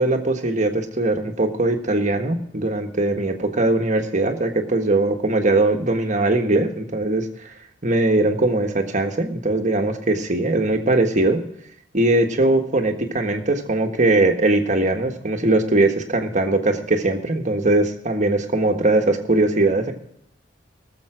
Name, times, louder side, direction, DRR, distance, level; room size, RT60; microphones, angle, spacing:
voice 1, 0.0-7.3 7.8-11.4 11.9-19.9, right 2 dB, 40° right, 5 dB, 1.5 m, -20 dB
19.0 x 7.2 x 5.0 m, 0.73 s
head